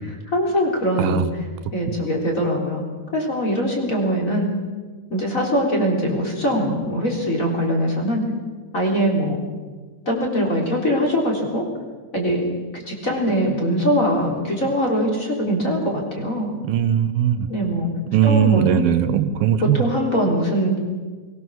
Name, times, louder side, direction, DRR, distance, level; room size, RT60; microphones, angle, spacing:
voice 1, 0.0-1.2 1.7-2.8 3.1-4.5 5.1-8.3 8.7-9.4 10.1-11.6 12.1-12.5 12.7-16.5 17.5-17.9 18.2-18.6 19.6-20.8, equal, 20° left, 0 dB, 3.7 m, -22 dB
voice 2, 1.0-1.3 1.9-2.0 16.6-17.5 18.1-19.8, right 10 dB, 80° right, 11 dB, 2.7 m, -19 dB
23.0 x 18.5 x 7.2 m, 1.4 s
omnidirectional pair, 4.2 m